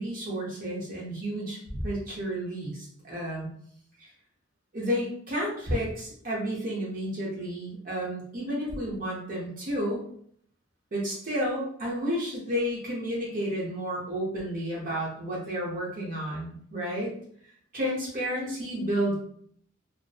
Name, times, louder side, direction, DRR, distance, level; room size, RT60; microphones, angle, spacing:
voice 1, 0.0-3.5 4.0-4.1 4.7-10.0 10.9-17.1 17.7-19.1, equal, 45° right, -5 dB, 0.7 m, -31 dB
2.5 x 2.1 x 2.4 m, 0.62 s
head